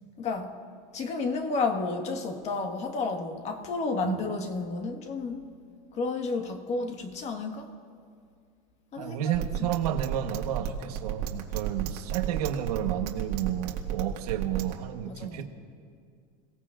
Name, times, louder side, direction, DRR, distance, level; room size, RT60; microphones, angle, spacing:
voice 1, 0.2-0.5 0.9-5.5 5.9-7.7 8.9-9.7 15.1-15.4, left 3 dB, 35° left, 1.6 m, -31 dB
voice 2, 9.0-15.4, right 11 dB, 85° right, 1.3 m, -31 dB
sound 1, 9.3-14.7, right 11 dB, 65° right, 1.9 m, -31 dB
28.0 x 17.0 x 2.6 m
supercardioid pair, 130°, 19 cm